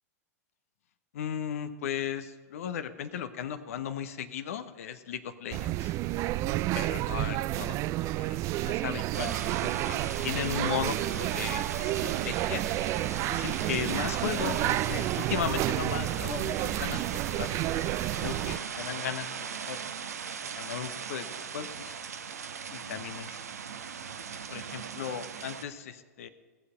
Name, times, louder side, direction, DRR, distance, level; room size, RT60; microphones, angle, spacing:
voice 1, 1.1-5.9 6.7-7.8 8.2-9.3 9.6-12.6 13.3-17.6 18.2-19.4 19.7-19.8 20.6-22.0 22.7-23.4 24.5-26.3, left 9 dB, 60° left, 11 dB, 0.8 m, -36 dB
sound 1, 5.5-18.6, right 16 dB, 35° right, 0.3 m, -30 dB
sound 2, 9.1-25.6, right 7 dB, 75° right, 0.9 m, -38 dB
18.0 x 6.6 x 5.6 m, 1.5 s
figure-of-eight pair, 95°, 9 cm